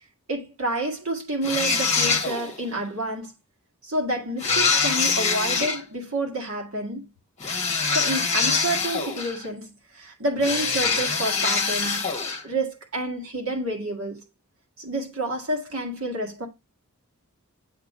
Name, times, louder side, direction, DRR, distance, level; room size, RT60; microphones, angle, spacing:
voice 1, 0.3-3.3 3.8-7.1 7.9-12.1 12.4-14.2 14.8-16.5, right 1 dB, 65° right, 2.0 m, -29 dB
sound 1, 1.4-2.6 4.4-5.8 7.4-9.5 10.4-12.4, left 4 dB, 30° left, 1.1 m, -24 dB
7.8 x 2.8 x 4.7 m
head